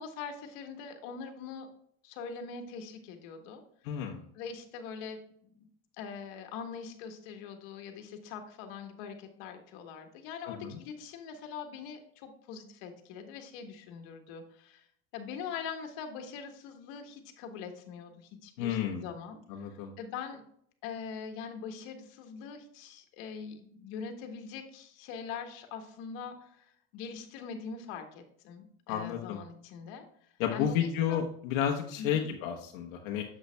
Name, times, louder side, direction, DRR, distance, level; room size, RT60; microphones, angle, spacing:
voice 1, 0.0-1.7 2.0-3.6 4.3-5.2 5.6-5.7 6.0-14.9 15.1-20.4 20.8-30.0 30.5-31.2 32.0-32.3, left 6 dB, 65° left, 5 dB, 1.6 m, -43 dB
voice 2, 3.8-4.2 10.6-10.8 18.6-19.0 19.5-19.9 28.9-29.4 30.4-33.2, left 9 dB, 85° left, 1 dB, 1.1 m, -31 dB
8.0 x 7.5 x 2.2 m, 0.65 s
supercardioid pair, 140°, 40 cm